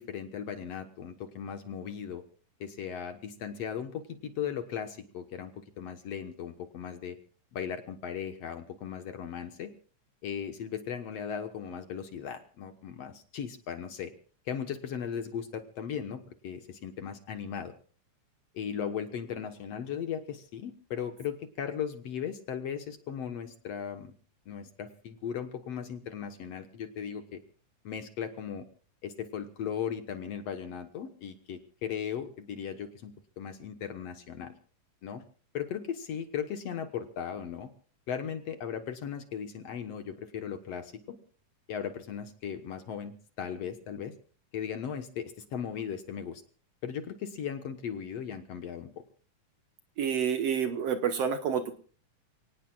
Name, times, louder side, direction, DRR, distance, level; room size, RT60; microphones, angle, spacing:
voice 1, 0.0-2.2 2.6-7.2 7.5-9.7 10.2-14.1 14.5-17.7 18.5-24.2 24.5-27.4 27.8-28.7 29.0-34.5 35.0-35.2 35.5-37.7 38.1-41.2 41.7-44.1 44.5-46.4 46.8-48.9, left 8 dB, 60° left, 7 dB, 2.1 m, -37 dB
voice 2, 50.0-51.7, right 7 dB, 65° right, 7 dB, 2.0 m, -28 dB
29.0 x 18.5 x 2.4 m, 0.40 s
omnidirectional pair, 3.6 m